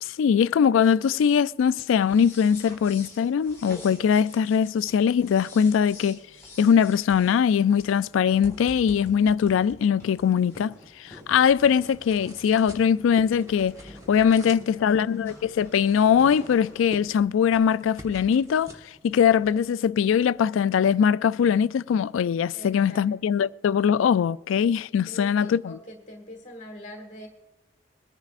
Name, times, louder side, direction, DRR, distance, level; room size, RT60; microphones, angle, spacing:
voice 1, 0.0-6.2 6.6-13.8 14.1-18.7 19.0-25.8, left 7 dB, 90° left, 0.3 m, -21 dB
sound 1, 2.0-17.2, left 1 dB, 15° left, 4.7 m, -47 dB
sound 2, 10.3-20.5, right 1 dB, 20° right, 1.2 m, -48 dB
voice 2, 14.5-15.1 22.5-23.0 23.4-23.5 25.1-27.3, left 1 dB, 35° left, 1.7 m, -43 dB
22.0 x 10.5 x 2.5 m
head